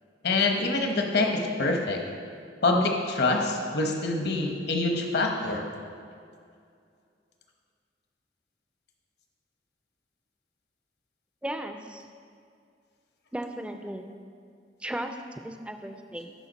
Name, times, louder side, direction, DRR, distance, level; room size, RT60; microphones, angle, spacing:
voice 1, 0.2-2.0 2.6-5.7, left 2 dB, 65° left, 2 dB, 1.0 m, -25 dB
voice 2, 11.4-12.0 13.3-14.1 14.8-16.3, right 1 dB, 5° right, 6 dB, 0.4 m, -36 dB
11.5 x 4.8 x 4.0 m, 2.3 s
head